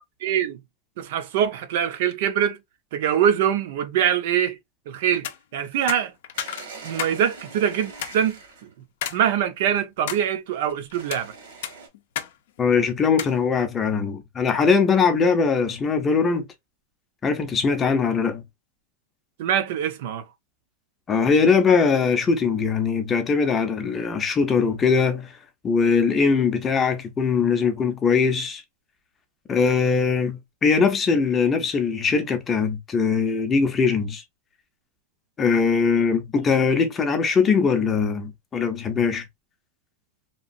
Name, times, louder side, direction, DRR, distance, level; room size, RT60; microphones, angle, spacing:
voice 1, 0.2-0.6 1.0-2.6 2.9-4.6 4.9-6.1 6.8-8.7 9.1-11.3 19.4-20.2, right 9 dB, 55° right, 0.6 m, -24 dB
sound 1, 5.1-5.4 5.9-7.2 7.5-7.6 8.0-8.2 9.0-9.2 9.7-10.2 10.9-11.2 11.6-12.3 12.6-12.7 13.2-13.4, left 10 dB, 65° left, 0.5 m, -31 dB
sound 2, 6.3-8.7 10.9-11.9, right 4 dB, 80° right, 1.3 m, -42 dB
voice 2, 12.6-16.5 17.2-18.4 21.1-25.3 25.6-28.6 29.5-34.2 35.4-39.2, left 5 dB, 15° left, 0.6 m, -21 dB
2.9 x 2.3 x 2.5 m
supercardioid pair, 170°, 0 cm